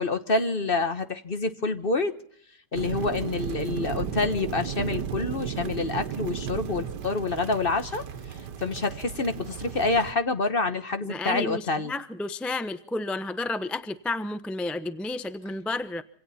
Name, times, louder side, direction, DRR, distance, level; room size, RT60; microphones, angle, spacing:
voice 1, 0.0-2.1 2.7-11.9, left 3 dB, 35° left, 9 dB, 1.2 m, -27 dB
sound 1, 2.7-10.1, right 8 dB, 80° right, 1.7 m, -34 dB
voice 2, 11.0-16.0, left 2 dB, ahead, 11 dB, 0.6 m, -31 dB
26.5 x 25.5 x 4.3 m, 0.62 s
omnidirectional pair, 1.8 m